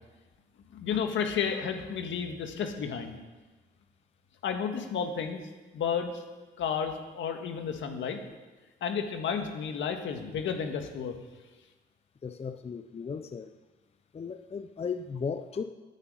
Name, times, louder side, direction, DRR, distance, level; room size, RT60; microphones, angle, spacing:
voice 1, 0.7-3.2 4.4-5.4 5.7-6.2 6.6-8.2 8.8-11.1, left 7 dB, 75° left, 5 dB, 1.8 m, -32 dB
voice 2, 12.2-13.5 14.1-15.6, left 6 dB, 30° left, 9 dB, 0.7 m, -36 dB
10.5 x 9.4 x 8.9 m, 1.2 s
cardioid pair, 90°, 20 cm